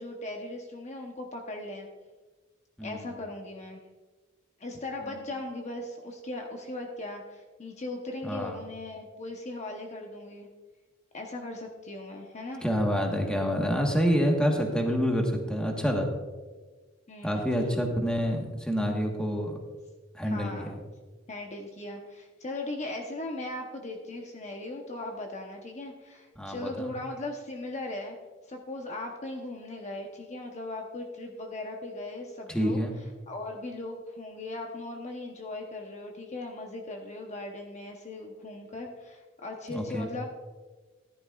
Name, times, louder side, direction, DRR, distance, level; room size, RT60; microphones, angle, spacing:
voice 1, 0.0-1.9 2.8-3.8 4.6-10.5 11.1-12.6 17.1-17.5 20.2-20.7 21.3-28.2 28.5-32.8 33.3-40.3, left 2 dB, 35° left, 2 dB, 0.9 m, -38 dB
voice 2, 2.8-3.2 5.0-5.2 8.2-8.6 12.6-16.1 17.2-19.6 20.1-20.7 26.4-26.9 32.5-32.9 39.7-40.1, equal, 5° left, 1 dB, 1.3 m, -27 dB
14.0 x 11.5 x 2.4 m, 1.3 s
head